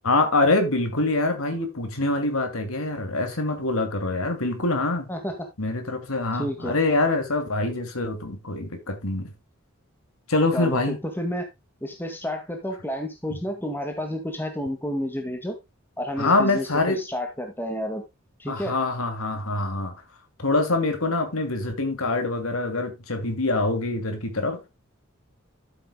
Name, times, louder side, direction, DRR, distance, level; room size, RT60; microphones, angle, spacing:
voice 1, 0.0-5.1 5.6-9.3 10.3-11.0 16.2-17.0 18.5-19.9 20.4-24.7, left 2 dB, 85° left, 2.5 m, -25 dB
voice 2, 5.1-5.5 6.3-6.8 10.5-11.5 11.8-15.6 16.0-18.0 18.4-18.8, equal, 10° left, 1.8 m, -30 dB
13.5 x 7.8 x 2.2 m
head